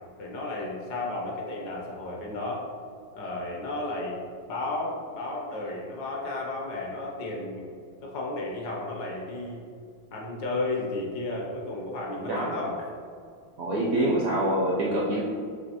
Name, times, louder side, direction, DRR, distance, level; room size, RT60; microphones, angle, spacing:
voice 1, 0.2-2.6 3.1-7.7 8.0-9.6 10.1-12.8, left 2 dB, 65° left, -2 dB, 1.2 m, -33 dB
voice 2, 12.3-12.7 13.6-15.2, right 1 dB, 70° right, -5 dB, 0.8 m, -26 dB
6.4 x 2.8 x 2.8 m, 2.3 s
omnidirectional pair, 2.1 m